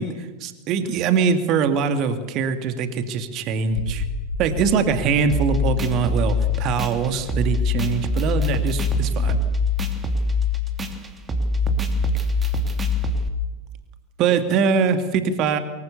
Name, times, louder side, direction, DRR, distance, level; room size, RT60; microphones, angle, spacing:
voice 1, 0.0-4.0 4.4-9.4 14.2-15.6, right 6 dB, 35° right, 9 dB, 2.3 m, -22 dB
sound 1, 3.7-13.8, left 2 dB, 55° left, 3.0 m, -35 dB
sound 2, 5.3-13.3, left 3 dB, 15° right, 2.9 m, -23 dB
24.0 x 23.0 x 7.0 m, 1.2 s
figure-of-eight pair, 90°, 0 cm